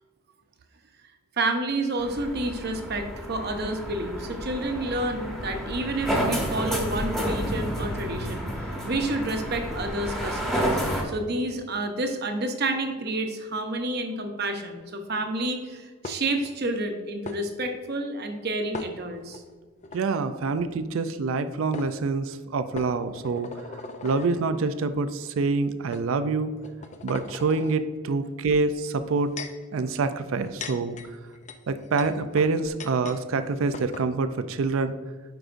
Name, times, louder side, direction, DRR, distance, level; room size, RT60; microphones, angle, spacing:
voice 1, 1.4-8.5 8.8-10.8 11.0-19.4, right 2 dB, 50° right, 5 dB, 0.8 m, -29 dB
sound 1, 2.0-11.0, equal, ahead, 1.1 m, -30 dB
sound 2, 16.0-16.5 17.2-17.4 18.7-19.4 19.8-20.0 21.3-21.4 21.7-21.9 22.7-24.3 25.1-25.3 25.9-26.1 26.6-27.8 28.9-29.6 30.3-33.2 33.5-33.6 33.7-34.1, left 4 dB, 30° left, 0.4 m, -39 dB
voice 2, 19.9-26.5 27.0-29.3 29.7-31.0 31.7-34.9, right 4 dB, 70° right, 11 dB, 0.4 m, -26 dB
9.3 x 5.0 x 2.5 m, 1.5 s
head